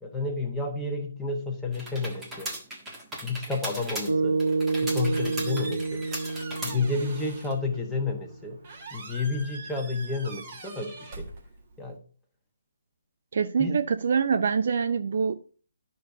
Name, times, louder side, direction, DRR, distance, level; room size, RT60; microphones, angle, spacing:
voice 1, 0.0-2.5 3.2-4.4 4.8-6.0 6.6-8.6 8.9-11.3 11.8-12.0 13.6-13.8, left 3 dB, 5° left, 0 dB, 1.3 m, -30 dB
sound 1, 1.7-7.2, right 1 dB, 10° right, 1.5 m, -38 dB
sound 2, 4.1-8.4, right 3 dB, 80° right, 1.6 m, -29 dB
Squeak, 4.5-12.0, right 3 dB, 35° right, 1.7 m, -44 dB
voice 2, 13.3-15.5, right 6 dB, 50° right, 10 dB, 0.5 m, -25 dB
11.5 x 6.5 x 2.8 m, 0.40 s
figure-of-eight pair, 140°, 0 cm